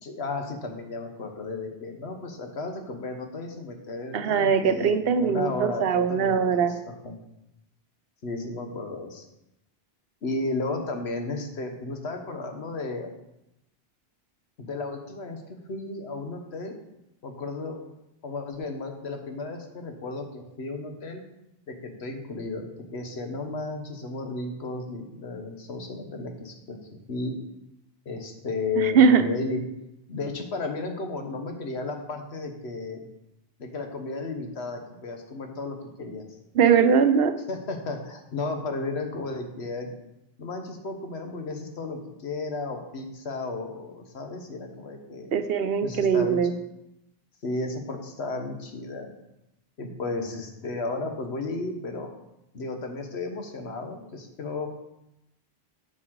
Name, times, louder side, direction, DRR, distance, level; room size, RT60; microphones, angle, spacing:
voice 1, 0.0-7.1 8.2-9.3 10.2-13.1 14.6-16.7 17.2-17.8 18.2-21.2 21.7-26.8 27.1-27.4 28.0-29.6 30.1-33.1 33.6-36.3 37.5-39.9 40.4-45.3 45.8-46.4 47.4-49.1 49.8-52.1 52.5-54.7, left 3 dB, 90° left, 4 dB, 1.4 m, -34 dB
voice 2, 4.1-6.7 28.8-29.2 36.5-37.4 45.3-46.5, right 6 dB, 70° right, 10 dB, 0.9 m, -21 dB
7.4 x 7.3 x 4.6 m, 0.87 s
omnidirectional pair, 1.1 m